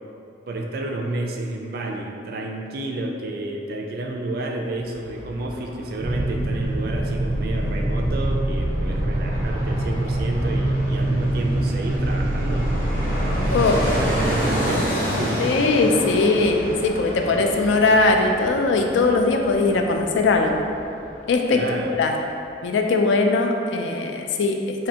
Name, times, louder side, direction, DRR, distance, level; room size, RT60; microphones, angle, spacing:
voice 1, 0.5-12.7 13.7-15.4 21.5-21.9, right 2 dB, 60° right, 1 dB, 0.4 m, -30 dB
Fixed-wing aircraft airplane, 4.8-21.7 22.0-22.1, equal, 60° left, 0.8 m, -31 dB
sound 1, 6.0-15.6, right 1 dB, 45° left, 1.4 m, -24 dB
voice 2, 15.4-20.6 21.3-21.6 21.9-22.1 22.6-24.9, left 3 dB, 90° left, 3 dB, 0.3 m, -20 dB
4.1 x 2.6 x 2.7 m, 2.6 s
head